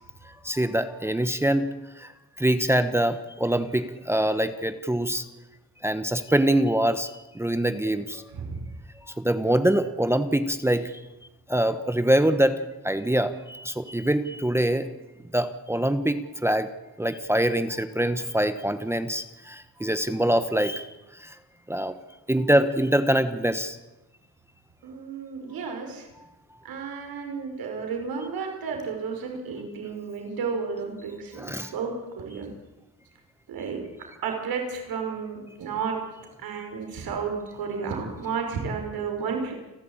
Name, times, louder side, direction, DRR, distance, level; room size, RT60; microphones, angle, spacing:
voice 1, 0.2-2.1 2.4-5.2 5.8-8.2 9.1-11.0 11.5-14.9 15.3-16.7 17.0-21.4 21.7-22.0 22.3-23.8 31.4-31.7, right 1 dB, 5° right, 10 dB, 1.0 m, -24 dB
voice 2, 8.3-8.6 24.8-26.1 26.6-32.5 33.5-33.8 34.2-36.0 36.4-39.5, right 5 dB, 70° right, 3 dB, 5.6 m, -32 dB
30.0 x 12.0 x 8.8 m, 1.0 s
cardioid pair, 140°, 37 cm